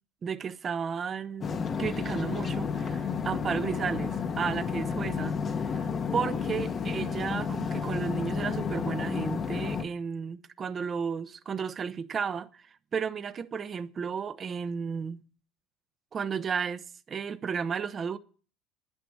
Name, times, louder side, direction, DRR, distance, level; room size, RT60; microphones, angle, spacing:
voice 1, 0.2-12.6 12.9-15.2 16.1-18.2, right 6 dB, 30° right, 1.0 m, -33 dB
sound 1, 1.4-9.8, left 6 dB, 30° left, 1.1 m, -31 dB
11.0 x 9.2 x 8.6 m
supercardioid pair, 120°, 0 cm